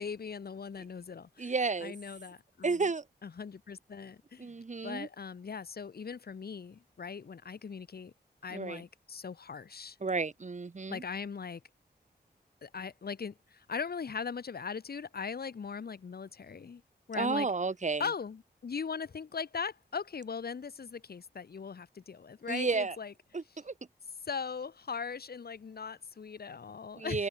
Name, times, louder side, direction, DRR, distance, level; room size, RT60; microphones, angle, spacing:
voice 1, 0.0-1.5 1.8-2.8 3.2-4.5 4.8-8.1 8.4-10.0 10.9-11.6 12.6-16.8 17.1-17.5 18.0-23.1 24.3-27.2, left 6 dB, 65° left, 1.1 m, -39 dB
voice 2, 1.4-2.0 2.6-3.0 4.4-5.1 8.5-8.8 10.0-11.0 17.1-18.1 22.5-23.0 23.3-23.7 27.0-27.3, right 4 dB, 45° right, 1.8 m, -32 dB
wide cardioid pair, 90°, 17 cm